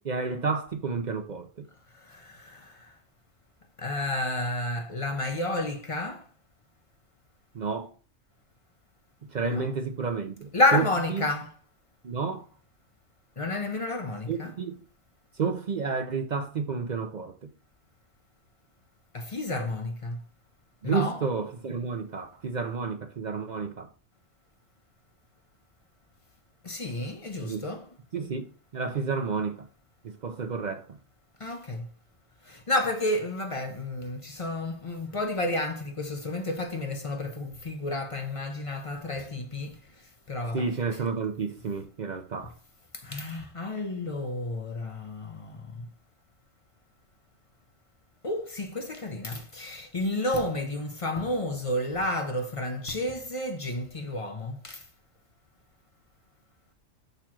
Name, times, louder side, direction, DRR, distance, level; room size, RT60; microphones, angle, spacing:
voice 1, 0.0-1.7 7.5-7.9 9.2-11.3 12.0-12.4 14.3-14.8 15.4-17.5 20.8-23.9 27.4-27.7 28.1-28.5 28.7-29.7 30.0-31.0 40.5-42.5, right 5 dB, 50° right, 0.5 m, -31 dB
voice 2, 2.1-2.6 3.8-6.2 9.4-9.7 10.5-11.5 13.4-14.5 19.1-20.2 20.8-21.2 26.6-27.9 31.4-31.8 32.5-39.7 40.3-40.7 43.0-45.5 48.2-54.8, left 2 dB, 35° left, 0.6 m, -30 dB
6.7 x 3.0 x 5.9 m
omnidirectional pair, 1.3 m